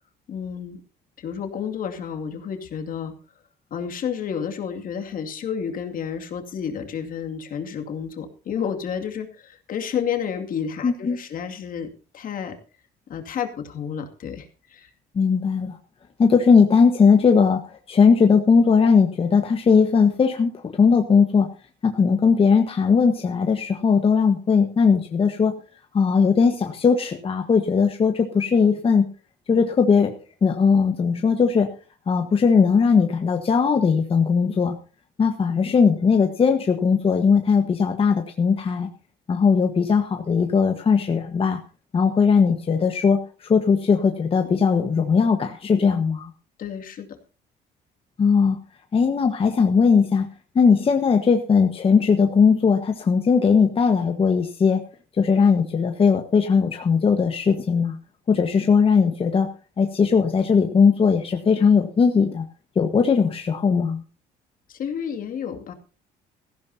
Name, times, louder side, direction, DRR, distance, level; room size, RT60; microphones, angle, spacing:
voice 1, 0.3-0.8 1.2-3.1 3.7-12.6 13.1-14.9 46.6-47.2 64.7-65.7, left 7 dB, 55° left, 5 dB, 2.4 m, -31 dB
voice 2, 10.8-11.2 15.1-15.8 16.2-17.6 17.9-21.5 21.8-25.5 25.9-29.1 29.5-30.1 30.4-31.7 32.1-34.8 35.2-38.9 39.3-41.6 41.9-46.3 48.2-48.6 48.9-50.3 50.5-54.8 55.2-58.0 58.3-59.5 59.8-62.4 62.7-64.0, left 5 dB, 35° left, 4 dB, 1.4 m, -19 dB
16.5 x 15.0 x 2.8 m, 0.35 s
cardioid pair, 110°, 17 cm